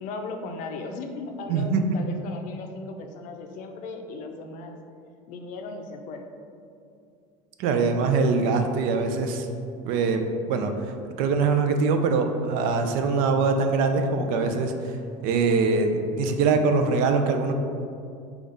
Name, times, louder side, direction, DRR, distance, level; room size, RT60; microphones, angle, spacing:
voice 1, 0.0-4.8 5.3-6.2, left 3 dB, 55° left, 4 dB, 0.5 m, -37 dB
voice 2, 1.5-2.0 7.6-9.5 9.9-10.2 10.5-15.0 15.2-17.5, right 4 dB, 65° right, 6 dB, 0.4 m, -23 dB
5.1 x 2.4 x 3.9 m, 2.5 s
supercardioid pair, 130°, 16 cm